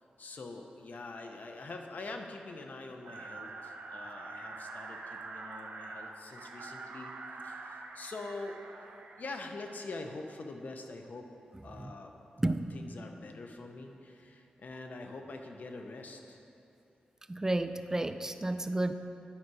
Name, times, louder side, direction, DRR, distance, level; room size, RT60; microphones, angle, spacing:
voice 1, 0.2-7.1 7.4-8.6 9.2-11.3 11.6-12.1 12.7-16.4, left 3 dB, 65° left, 4 dB, 0.8 m, -44 dB
sound 1, 3.0-9.3, right 3 dB, 70° right, 0.7 m, -45 dB
voice 2, 12.4-12.7 17.3-18.9, right 2 dB, 20° right, 10 dB, 0.3 m, -31 dB
10.5 x 5.9 x 4.7 m, 2.8 s
cardioid pair, 75°, 3 cm